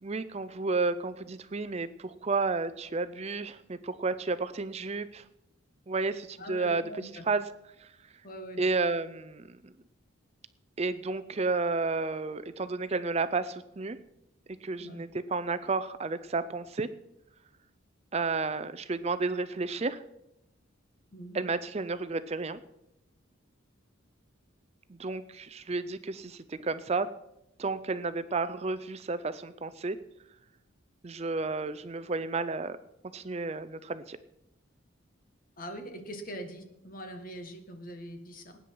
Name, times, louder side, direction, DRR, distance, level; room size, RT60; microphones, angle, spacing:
voice 1, 0.0-5.2 5.9-7.4 7.8-7.9 8.6-9.7 10.8-14.0 14.6-16.9 18.1-20.0 21.3-22.6 24.9-27.1 27.6-30.0 31.0-32.8 33.1-34.2, right 3 dB, 30° right, 13 dB, 0.5 m, -32 dB
voice 2, 6.4-7.2 8.2-8.6 14.8-15.0 21.1-21.4 35.6-38.6, equal, 40° left, 6 dB, 1.7 m, -42 dB
19.0 x 9.5 x 4.6 m, 0.84 s
head